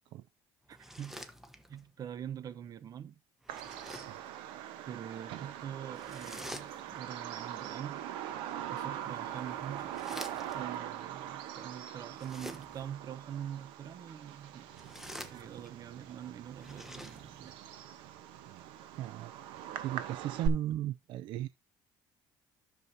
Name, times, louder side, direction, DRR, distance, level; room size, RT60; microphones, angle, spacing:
sound 1, 0.7-1.9 3.4-4.3 5.9-7.1 8.9-10.8 12.1-13.0 14.6-15.8 16.5-17.6, equal, 5° right, 1.1 m, -48 dB
voice 1, 0.7-1.2 1.7-3.2 4.9-8.1 8.7-10.0 10.5-14.7 15.0-17.6 20.7-20.8, right 9 dB, 45° right, 0.9 m, -44 dB
Bird vocalization bird call bird song, 3.5-20.5, right 10 dB, 85° right, 1.0 m, -42 dB
voice 2, 19.0-19.3 19.8-21.5, right 13 dB, 70° right, 0.5 m, -36 dB
11.0 x 7.0 x 2.8 m
cardioid pair, 110°, 9 cm